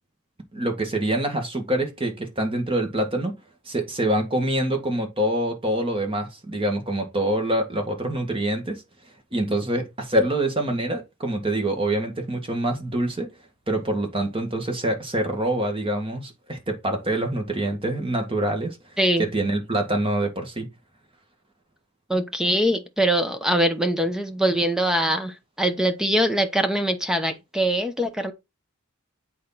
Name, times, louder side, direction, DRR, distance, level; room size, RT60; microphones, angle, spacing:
voice 1, 0.5-3.3 3.7-8.8 9.3-13.3 13.7-18.8 19.2-20.7, right 1 dB, 25° right, 2.0 m, -25 dB
voice 2, 19.0-19.3 22.1-28.3, right 1 dB, 5° right, 0.9 m, -23 dB
8.4 x 4.3 x 4.1 m
head